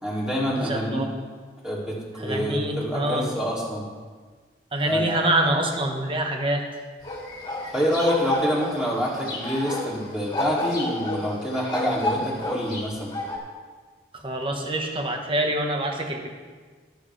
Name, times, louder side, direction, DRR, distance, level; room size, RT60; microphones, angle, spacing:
voice 1, 0.0-1.1 1.6-3.8 4.8-5.2 7.7-13.2, equal, 5° right, -6 dB, 2.8 m, -26 dB
voice 2, 0.5-1.0 2.2-3.3 4.7-6.6 14.1-16.3, right 1 dB, 30° right, 2 dB, 1.3 m, -25 dB
sound 1, 7.0-13.4, left 1 dB, 25° left, 2.5 m, -31 dB
22.0 x 7.7 x 3.4 m, 1.5 s
head